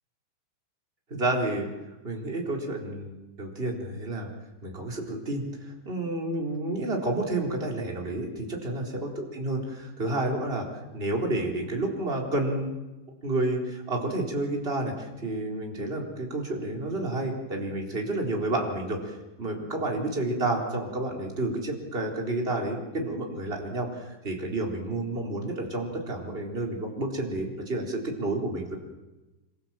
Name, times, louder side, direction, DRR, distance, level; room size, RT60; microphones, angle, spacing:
voice 1, 1.1-1.7 2.0-4.3 4.6-5.4 5.9-12.7 13.2-28.8, right 2 dB, 15° right, 0 dB, 3.5 m, -30 dB
26.0 x 26.0 x 7.6 m, 1.1 s
omnidirectional pair, 5.5 m